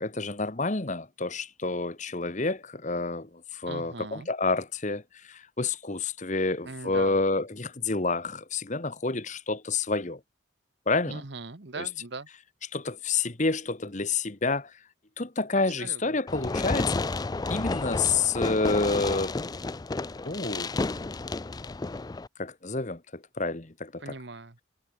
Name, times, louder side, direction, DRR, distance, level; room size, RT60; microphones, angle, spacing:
voice 1, 0.0-5.0 5.3-10.2 10.9-11.2 11.8-11.9 12.7-14.7 15.2-17.0 17.5-19.3 20.2-20.7 22.4-23.0 23.4-24.1, left 3 dB, 35° left, 1.3 m, -29 dB
voice 2, 3.7-4.3 6.6-7.2 11.1-12.3 15.8-16.2 24.0-24.6, right 3 dB, 55° right, 1.3 m, -40 dB
Fireworks, 16.3-22.3, left 3 dB, 20° left, 0.3 m, -31 dB
head